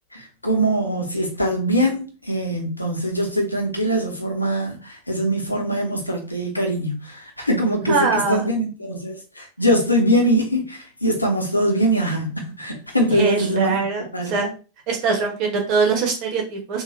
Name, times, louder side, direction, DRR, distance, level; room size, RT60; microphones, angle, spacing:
voice 1, 0.1-13.8 14.1-14.4, equal, 85° left, 0.9 m, -22 dB
voice 2, 7.9-8.4 13.1-14.5 14.9-16.8, right 4 dB, 40° right, 1.4 m, -22 dB
3.7 x 2.5 x 3.2 m
figure-of-eight pair, 90°, 0 cm